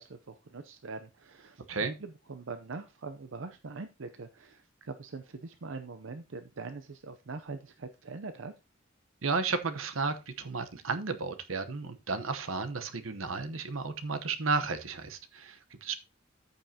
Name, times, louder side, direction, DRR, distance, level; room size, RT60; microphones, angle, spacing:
voice 1, 0.0-1.6 2.0-8.5, right 4 dB, 70° right, 0.7 m, -43 dB
voice 2, 9.2-15.9, right 4 dB, 90° right, 1.0 m, -33 dB
14.0 x 5.5 x 2.8 m
head